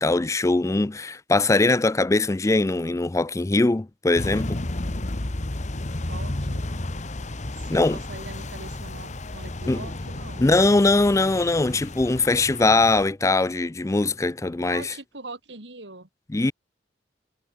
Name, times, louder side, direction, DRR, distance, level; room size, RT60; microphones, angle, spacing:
voice 1, 0.0-4.6 7.7-8.0 9.7-9.9 10.4-14.9 16.3-16.5, left 2 dB, 15° left, 0.4 m, -21 dB
sound 1, 4.2-13.0, left 1 dB, 40° left, 1.3 m, -32 dB
voice 2, 6.1-6.6 7.5-10.5 14.7-16.1, right 2 dB, 75° right, 3.5 m, -42 dB
head